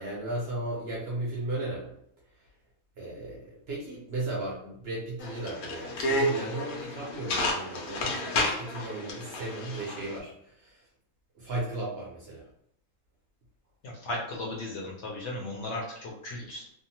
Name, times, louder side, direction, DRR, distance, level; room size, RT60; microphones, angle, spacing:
voice 1, 0.0-1.9 3.0-10.8 11.3-12.5, right 2 dB, 55° right, -4 dB, 0.8 m, -35 dB
sound 1, 5.2-10.2, left 1 dB, 85° left, 1.1 m, -31 dB
voice 2, 13.8-16.7, left 2 dB, 60° left, -2 dB, 0.8 m, -36 dB
2.7 x 2.0 x 2.8 m, 0.72 s
omnidirectional pair, 1.5 m